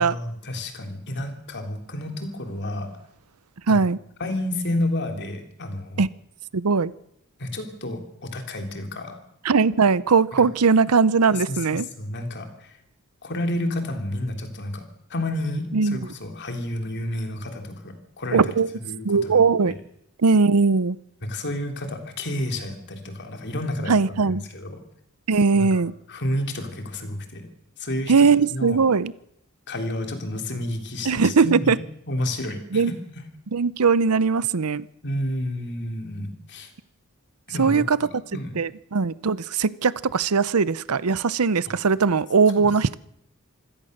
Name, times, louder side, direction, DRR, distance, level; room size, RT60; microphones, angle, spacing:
voice 1, 0.0-2.9 3.7-3.8 4.2-6.0 7.4-9.2 10.4-10.5 11.2-12.5 13.2-14.8 15.1-18.5 18.8-19.7 21.2-24.8 25.5-25.7 26.1-27.5 27.8-28.1 28.5-28.8 29.7-31.8 32.1-32.9 35.0-36.7 37.5-37.8 38.3-38.5 42.6-42.7, left 1 dB, 55° left, 5 dB, 3.3 m, -30 dB
voice 2, 3.7-4.0 6.0-6.1 6.5-6.9 9.4-11.9 15.7-16.0 18.3-18.7 19.0-19.7 20.2-21.0 23.9-24.4 25.3-25.9 28.1-29.1 31.0-31.8 32.7-32.9 33.5-34.9 37.6-38.0 38.6-43.0, right 5 dB, 90° right, 18 dB, 0.7 m, -20 dB
26.0 x 16.5 x 6.6 m, 0.78 s
head